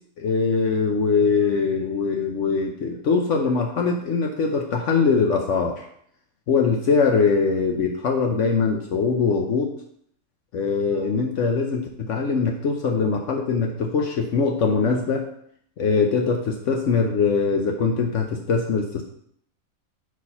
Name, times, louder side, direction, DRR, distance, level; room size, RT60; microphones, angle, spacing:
voice 1, 0.2-5.8 6.5-9.7 10.5-15.2 15.8-19.0, left 5 dB, 65° left, 2 dB, 1.0 m, -22 dB
4.9 x 4.1 x 5.5 m, 0.68 s
omnidirectional pair, 1.5 m